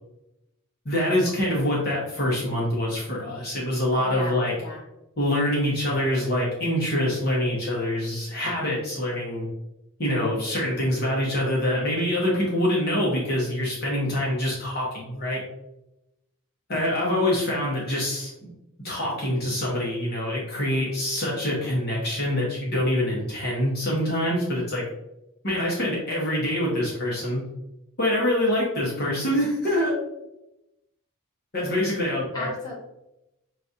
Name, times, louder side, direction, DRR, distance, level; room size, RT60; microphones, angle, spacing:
voice 1, 0.8-4.5 5.2-9.5 10.0-15.4 16.7-18.3 18.8-24.8 25.4-27.4 28.0-29.9 31.5-32.5, left 1 dB, 45° left, -4 dB, 1.1 m, -25 dB
voice 2, 4.0-4.8 32.3-32.7, left 2 dB, 20° left, -6 dB, 1.3 m, -36 dB
5.9 x 2.4 x 2.7 m, 0.89 s
head